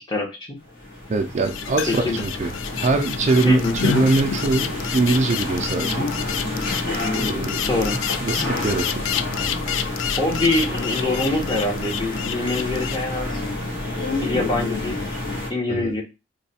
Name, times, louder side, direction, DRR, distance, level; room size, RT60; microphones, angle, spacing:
voice 1, 0.1-0.6 1.9-2.2 3.4-3.8 7.7-8.0 10.2-13.4 14.2-15.0 15.5-16.0, left 2 dB, 25° left, 0.9 m, -24 dB
sound 1, 0.7-15.5, left 2 dB, 55° left, 1.5 m, -29 dB
voice 2, 1.1-6.1 7.1-7.7 8.2-9.0 15.7-15.9, right 3 dB, 35° right, 0.4 m, -22 dB
sound 2, 1.4-13.0, left 9 dB, 75° left, 0.3 m, -29 dB
3.1 x 2.2 x 4.1 m
head